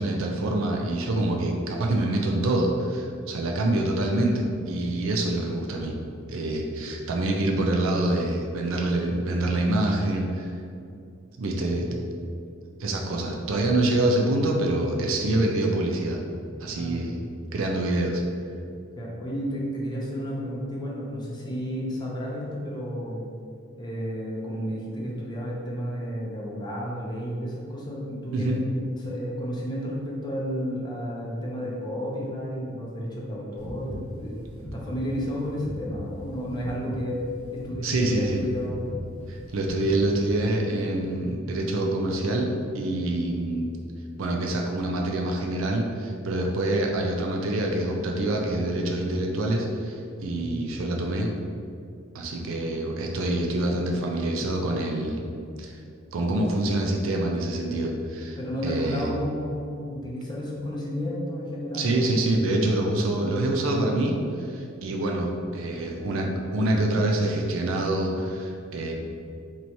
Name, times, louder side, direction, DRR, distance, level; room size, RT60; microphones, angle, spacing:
voice 1, 0.0-6.0 6.3-10.5 11.4-11.8 12.8-16.2 16.6-17.2 17.5-18.2 28.3-28.6 37.8-38.4 39.3-43.7 44.2-51.3 52.1-55.2 55.6-55.8 56.1-58.4 58.6-59.1 61.7-68.9, right 1 dB, 90° right, 1 dB, 0.4 m, -26 dB
voice 2, 16.7-17.2 19.0-23.2 23.8-37.2 37.5-38.9 50.4-50.6 54.6-55.0 58.4-62.3, equal, 20° left, -4 dB, 0.7 m, -32 dB
sound 1, 33.6-40.3, equal, 40° left, 1.2 m, -39 dB
3.0 x 2.6 x 4.4 m, 2.4 s
head